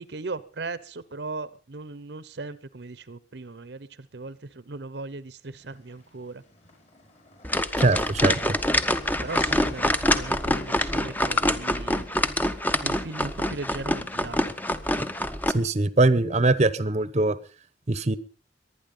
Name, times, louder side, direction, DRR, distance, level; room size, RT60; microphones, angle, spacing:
voice 1, 0.0-6.4 9.2-12.1 12.8-14.4, right 3 dB, 65° right, 17 dB, 0.8 m, -38 dB
sound 1, 5.6-12.6, left 2 dB, 40° left, 5.4 m, -50 dB
sound 2, 7.4-15.5, left 1 dB, 10° left, 0.8 m, -25 dB
voice 2, 7.8-8.4 15.5-17.4 17.9-18.2, right 2 dB, 40° right, 16 dB, 0.8 m, -22 dB
22.5 x 9.7 x 5.5 m, 0.40 s
head